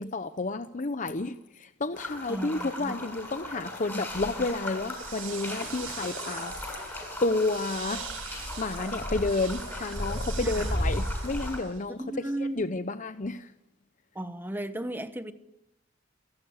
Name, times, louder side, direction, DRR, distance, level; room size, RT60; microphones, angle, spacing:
voice 1, 0.0-1.3 1.6-12.0 12.6-13.5, left 2 dB, 40° left, 0.8 m, -31 dB
sound 1, 1.9-11.6, left 1 dB, 10° left, 7.1 m, -35 dB
voice 2, 2.3-3.0 3.9-4.0 4.4-4.5 10.4-10.7 12.0-12.7 14.1-15.3, right 1 dB, 10° right, 1.2 m, -35 dB
sound 2, 4.7-11.9, right 9 dB, 90° right, 5.2 m, -43 dB
29.0 x 12.0 x 9.7 m
head